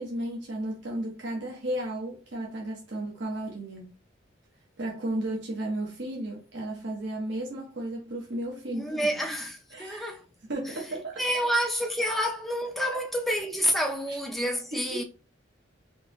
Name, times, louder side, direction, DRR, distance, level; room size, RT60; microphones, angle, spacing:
voice 1, 0.0-3.9 4.8-9.2 9.7-10.1 10.5-11.4 12.9-13.0 14.1-14.2 14.7-15.0, right 1 dB, 65° right, 0.9 m, -34 dB
voice 2, 8.7-10.2 11.2-15.0, equal, ahead, 0.5 m, -28 dB
3.6 x 2.8 x 3.0 m
head